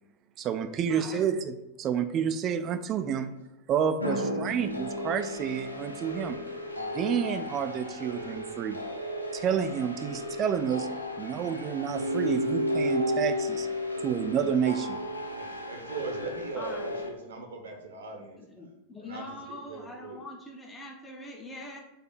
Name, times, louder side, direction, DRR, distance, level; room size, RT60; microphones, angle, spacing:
voice 1, 0.4-1.5 1.8-3.3 3.7-6.4 6.8-8.8 9.3-10.9 11.2-13.7 14.0-15.0, right 8 dB, 30° right, 9 dB, 0.3 m, -29 dB
voice 2, 0.9-1.2 4.1-4.5 16.6-17.0 18.4-21.8, left 1 dB, 15° left, 0 dB, 0.7 m, -43 dB
sound 1, 4.0-17.1, equal, 85° left, 0.5 m, -33 dB
voice 3, 15.4-18.4 19.0-20.2, right 3 dB, 65° right, 3 dB, 0.8 m, -40 dB
4.0 x 2.8 x 4.2 m, 0.97 s
figure-of-eight pair, 90°, 0 cm